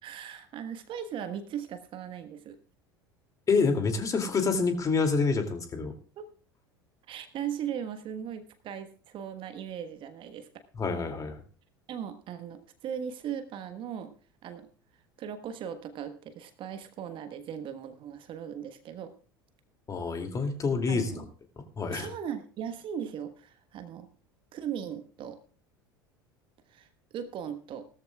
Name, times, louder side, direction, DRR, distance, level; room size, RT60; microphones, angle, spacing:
voice 1, 0.0-2.6 5.0-5.1 6.2-6.3 7.1-10.5 11.9-14.1 14.4-14.7 15.2-19.1 20.9-21.2 21.9-24.1 24.5-25.4 26.7-26.9 27.1-27.9, right 8 dB, 45° right, 10 dB, 1.3 m, -38 dB
voice 2, 3.5-5.9 10.8-11.4 19.9-21.2 21.8-22.1, left 4 dB, 25° left, 6 dB, 2.6 m, -27 dB
18.0 x 13.5 x 2.4 m, 0.39 s
figure-of-eight pair, 75°, 12 cm